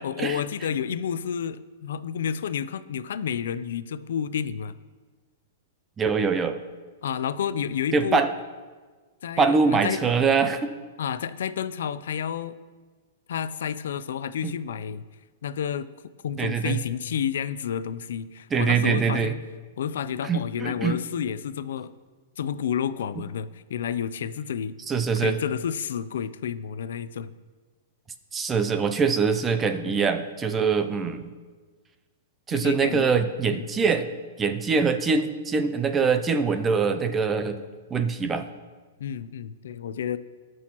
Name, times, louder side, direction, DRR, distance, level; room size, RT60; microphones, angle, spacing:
voice 1, 0.0-4.7 7.0-8.2 9.2-10.2 11.0-12.6 13.3-15.0 15.4-15.9 16.2-19.4 19.8-21.9 22.4-24.8 25.2-27.3 32.5-33.1 33.5-33.9 39.0-40.2, left 8 dB, 70° left, 14 dB, 0.4 m, -30 dB
voice 2, 6.0-6.6 7.9-8.3 9.4-10.7 14.4-14.5 16.4-16.8 18.5-19.3 20.2-21.0 24.9-25.4 28.3-31.2 32.5-34.1 34.4-37.6 37.9-38.4, right 5 dB, 10° right, 9 dB, 0.4 m, -23 dB
18.5 x 6.2 x 3.0 m, 1.4 s
supercardioid pair, 175°, 0 cm